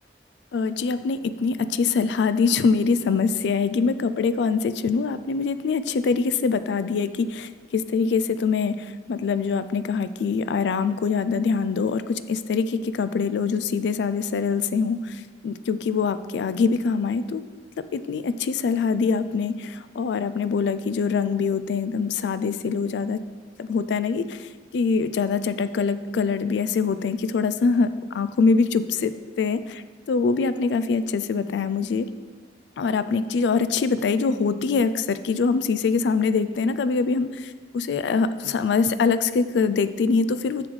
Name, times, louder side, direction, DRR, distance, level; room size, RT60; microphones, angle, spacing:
voice 1, 0.5-17.4 17.8-23.2 23.6-29.8 30.1-32.1 32.8-40.7, left 5 dB, 75° left, 12 dB, 0.3 m, -24 dB
7.0 x 6.7 x 3.2 m, 1.4 s
head